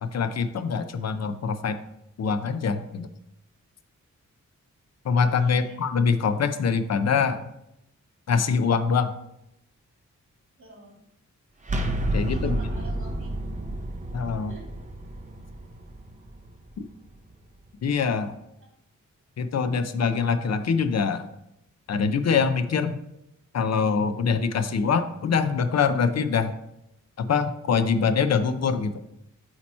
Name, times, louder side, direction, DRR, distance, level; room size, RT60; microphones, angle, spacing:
voice 1, 0.0-1.8 2.2-3.1 5.0-7.4 8.3-9.1 12.1-12.6 14.1-14.5 17.8-18.4 19.4-21.3 21.9-23.0 23.5-26.6 27.2-28.9, left 5 dB, 55° left, 10 dB, 0.5 m, -24 dB
voice 2, 5.4-5.8 10.6-11.0 12.3-13.3 14.5-14.7, right 2 dB, 45° right, -3 dB, 2.5 m, -45 dB
sound 1, 11.6-17.3, right 1 dB, 25° right, 0.6 m, -31 dB
8.4 x 2.9 x 4.3 m, 0.81 s
wide cardioid pair, 170°, 31 cm